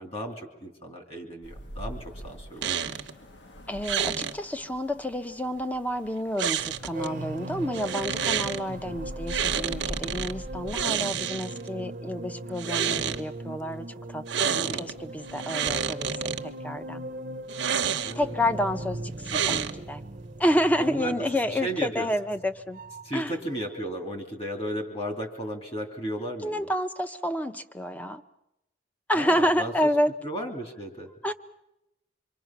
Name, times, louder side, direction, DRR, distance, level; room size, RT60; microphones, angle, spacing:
voice 1, 0.0-3.0 8.7-9.0 14.5-14.9 18.0-18.4 20.8-22.1 23.0-26.7 29.1-29.7 30.2-31.1, equal, 30° left, 3 dB, 3.0 m, -35 dB
sound 1, 1.4-10.8, equal, 75° left, 1.4 m, -43 dB
sound 2, 2.6-3.1 3.8-4.3 6.4-7.1 7.7-8.6 9.3-10.3 10.7-11.7 12.5-13.2 14.3-14.9 15.3-16.4 17.5-18.3 19.2-20.0, right 8 dB, 85° right, 0.9 m, -29 dB
voice 2, 3.7-17.0 17.8-17.9 18.1-20.0 20.4-22.8 23.1-23.3 26.4-28.2 29.1-30.1 31.2-31.3, equal, 10° left, 9 dB, 0.7 m, -29 dB
sound 3, 6.6-23.2 23.5-23.8, right 1 dB, 45° right, 0.7 m, -39 dB
26.5 x 23.5 x 6.0 m, 0.90 s
head